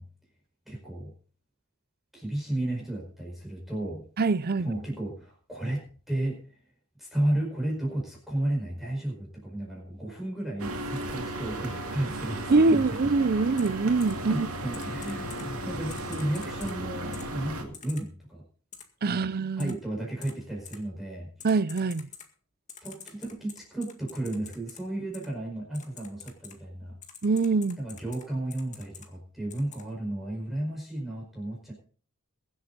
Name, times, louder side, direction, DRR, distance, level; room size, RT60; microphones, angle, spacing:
voice 1, 0.6-1.1 2.1-4.0 4.6-6.4 7.0-12.8 14.3-18.4 19.1-19.3 19.6-21.3 22.8-27.0 27.8-31.7, right 1 dB, ahead, 5.1 m, -33 dB
voice 2, 4.2-4.7 12.5-14.5 19.0-19.7 21.4-22.1 27.2-27.8, right 3 dB, 45° right, 0.5 m, -24 dB
sound 1, 10.6-17.6, right 1 dB, 70° right, 2.3 m, -35 dB
Typing, 13.6-13.7 14.0-14.1 14.7-15.4 15.9-16.7 17.1-17.2 17.7-18.0 18.7-18.8 19.6-19.7 20.2-20.3 20.6-20.8 21.4-22.3 22.7-24.8 25.1-25.3 25.7-26.5 27.0-28.2 28.5-29.1 29.5-29.8, left 8 dB, 35° left, 2.0 m, -46 dB
22.5 x 7.9 x 4.1 m
head